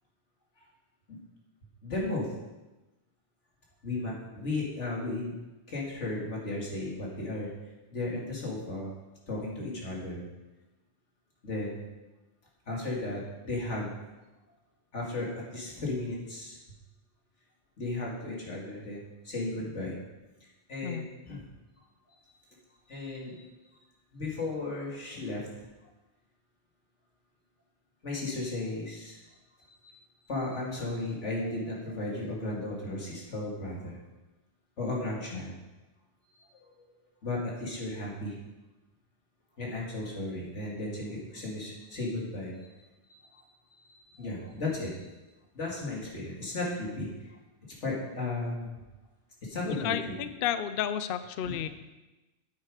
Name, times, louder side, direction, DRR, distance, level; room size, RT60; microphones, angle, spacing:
voice 1, 1.8-2.3 3.8-5.3 5.7-7.5 7.9-8.9 9.3-10.2 11.4-11.9 12.7-13.9 14.9-16.6 17.8-20.0 20.7-21.4 22.9-23.4 24.1-25.7 28.0-29.2 29.7-30.0 30.3-34.0 34.8-35.6 36.3-36.4 37.2-38.4 39.6-42.8 43.1-43.4 43.8-45.0 45.5-47.1 47.8-48.7 49.4-50.1 51.4-51.6, left 2 dB, 90° left, -3 dB, 2.7 m, -35 dB
voice 2, 49.7-51.7, left 9 dB, 60° left, 12 dB, 0.7 m, -32 dB
9.0 x 9.0 x 5.0 m, 1.1 s
omnidirectional pair, 1.2 m